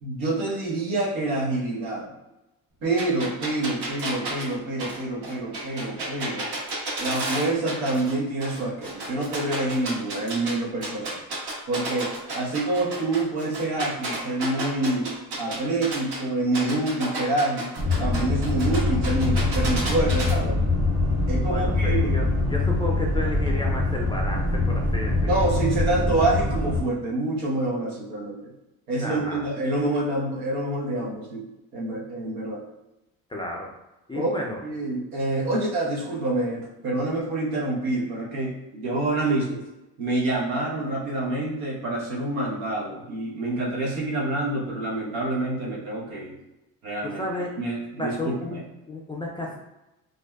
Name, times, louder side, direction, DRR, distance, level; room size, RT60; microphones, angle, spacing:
voice 1, 0.0-2.1 2.8-6.5 7.0-11.2 11.7-17.7 18.0-20.6 21.3-22.2 25.3-28.5 28.9-31.4 31.7-32.6 34.1-39.6 40.0-46.3 46.8-47.2 47.6-48.6, right 2 dB, 90° right, -4 dB, 1.0 m, -27 dB
sound 1, 3.0-8.1 8.4-10.5 10.8-16.2 16.5-20.3, right 2 dB, 65° right, 1.2 m, -32 dB
sound 2, 17.8-26.8, left 2 dB, 35° right, 0.9 m, -24 dB
voice 2, 21.5-25.3 29.0-29.5 33.3-33.7 34.1-34.6 47.0-47.6 48.0-49.6, left 1 dB, 10° left, -1 dB, 0.3 m, -32 dB
2.6 x 2.2 x 2.2 m, 0.97 s
supercardioid pair, 70°, 43 cm